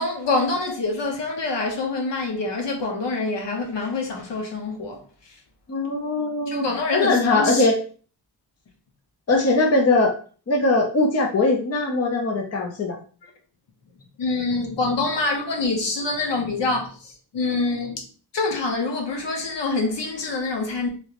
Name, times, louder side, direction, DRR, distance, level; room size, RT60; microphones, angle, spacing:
voice 1, 0.0-5.4 6.5-7.6 14.2-18.0 18.3-20.9, left 3 dB, 80° left, 1.0 m, -26 dB
voice 2, 5.7-6.7 6.9-7.8 9.3-10.1 10.5-13.0, left 2 dB, 35° left, 0.7 m, -20 dB
3.2 x 2.9 x 2.9 m
wide cardioid pair, 150°, 42 cm